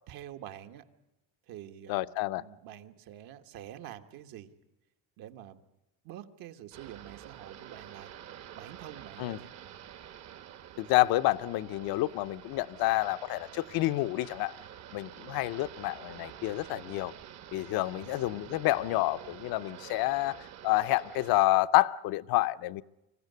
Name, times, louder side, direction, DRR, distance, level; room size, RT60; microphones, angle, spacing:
voice 1, 0.1-0.8 1.5-2.0 2.3-4.5 5.2-5.6 6.0-8.1 8.5-9.5, right 11 dB, 65° right, 1.5 m, -47 dB
voice 2, 1.9-2.4 9.2-9.4 10.8-14.6 14.9-17.1 17.5-22.8, left 18 dB, 70° left, 0.7 m, -28 dB
sound 1, 6.7-21.5, right 10 dB, 45° right, 1.0 m, -48 dB
25.0 x 15.0 x 9.4 m
cardioid pair, 165°, 38 cm